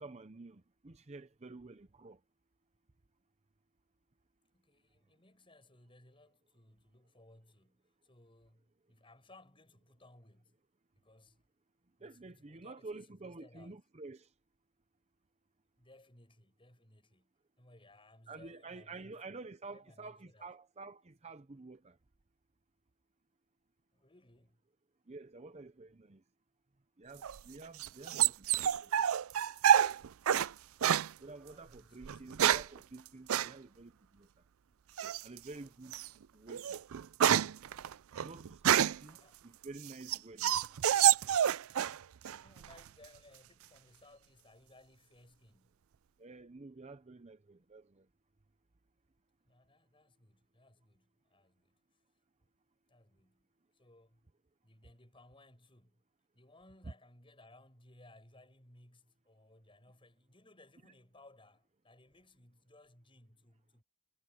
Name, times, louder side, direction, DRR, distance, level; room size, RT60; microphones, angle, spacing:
voice 1, 0.0-2.2 12.0-14.3 18.3-22.0 25.1-26.2 27.0-28.9 31.2-34.3 35.2-36.0 36.3-36.8 38.2-39.2 39.4-40.6 46.2-48.0, right 3 dB, 30° right, 0.7 m, -50 dB
voice 2, 4.5-10.6 11.0-11.4 12.0-13.8 15.8-20.5 23.9-24.6 31.5-32.4 39.1-39.4 42.4-45.9 49.4-51.8 52.9-54.3 54.6-56.1 56.3-63.8, left 2 dB, 25° left, 7.3 m, -62 dB
sound 1, 27.2-30.5 30.8-31.1 32.0-32.8 33.3-33.5 35.0-35.4 35.9-36.1 36.5-39.1 39.6-42.0 42.2-42.9, right 10 dB, 70° right, 0.4 m, -28 dB
head